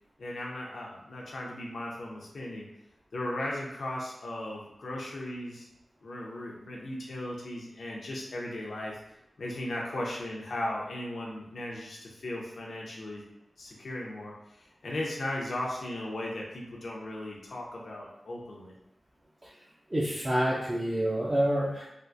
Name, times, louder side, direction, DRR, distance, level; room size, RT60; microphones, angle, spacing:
voice 1, 0.2-2.7 3.1-5.7 6.0-9.0 9.4-13.2 13.6-18.7, left 1 dB, 75° left, -3 dB, 0.5 m, -37 dB
voice 2, 19.9-21.9, right 1 dB, 25° right, -6 dB, 0.4 m, -27 dB
3.5 x 2.4 x 2.5 m, 0.87 s
wide cardioid pair, 110°, 0 cm